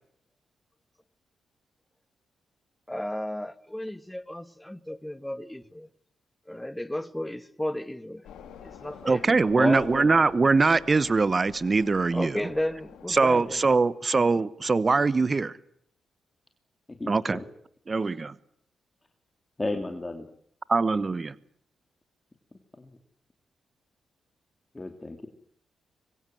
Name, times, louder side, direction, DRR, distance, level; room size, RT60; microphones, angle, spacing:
voice 1, 2.9-5.9 6.5-8.2 8.6-9.5 12.1-13.6, left 1 dB, 10° left, 1.7 m, -34 dB
sound 1, 8.2-13.9, left 8 dB, 80° left, 4.0 m, -48 dB
voice 2, 9.1-12.4 13.1-15.6 17.1-17.4 17.9-18.3 20.7-21.3, right 4 dB, 40° right, 1.0 m, -22 dB
voice 3, 9.6-10.1 17.0-17.4 18.0-18.1 19.6-20.3 24.7-25.3, left 2 dB, 25° left, 3.1 m, -31 dB
25.5 x 22.5 x 7.8 m
supercardioid pair, 45°, 0 cm